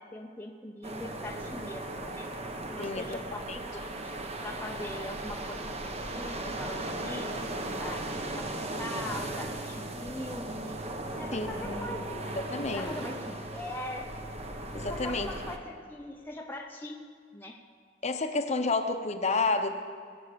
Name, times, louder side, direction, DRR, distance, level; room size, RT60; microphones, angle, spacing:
voice 1, 0.0-2.3 2.7-4.1 4.4-10.8 11.2-14.1 14.9-17.0 17.3-17.6, left 1 dB, 10° left, 1 dB, 0.7 m, -41 dB
sound 1, 0.8-15.6, right 1 dB, 35° right, 1.0 m, -37 dB
voice 2, 2.8-3.2 3.5-3.6 11.3-12.0 12.5-12.9 14.7-15.3 18.0-19.7, left 3 dB, 35° left, 6 dB, 0.9 m, -30 dB
20.5 x 7.9 x 6.9 m, 2.1 s
head